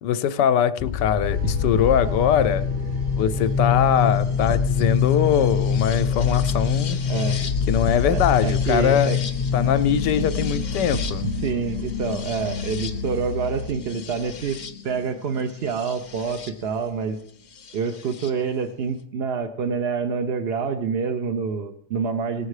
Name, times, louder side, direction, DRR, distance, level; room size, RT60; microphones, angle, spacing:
voice 1, 0.0-2.7 3.2-7.0 7.7-9.2 9.5-11.3, left 9 dB, 85° left, 12 dB, 1.3 m, -22 dB
sound 1, 0.8-16.5 17.7-18.3, left 6 dB, 50° left, 0.5 m, -26 dB
sound 2, 1.2-13.7, left 1 dB, 75° right, 1.7 m, -33 dB
voice 2, 8.1-9.2 11.4-14.6 14.8-17.2 17.7-22.5, right 5 dB, 55° right, 6 dB, 0.7 m, -27 dB
18.0 x 7.4 x 4.8 m, 0.69 s
omnidirectional pair, 1.8 m